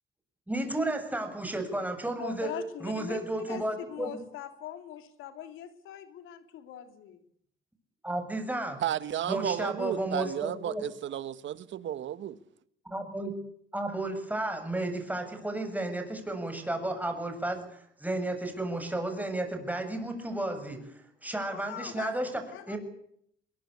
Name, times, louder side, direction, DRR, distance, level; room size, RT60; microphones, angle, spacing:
voice 1, 0.5-4.2 8.0-8.8 9.3-10.8 12.9-13.3 13.7-22.4 22.7-22.8, right 1 dB, 10° right, 7.6 m, -33 dB
voice 2, 2.2-3.2 3.5-3.6 3.9-7.2 21.5-22.1 22.5-22.8, left 11 dB, 90° left, 3.0 m, -42 dB
voice 3, 8.8-12.4, right 11 dB, 70° right, 1.5 m, -33 dB
22.0 x 22.0 x 8.5 m
cardioid pair, 90°, 20 cm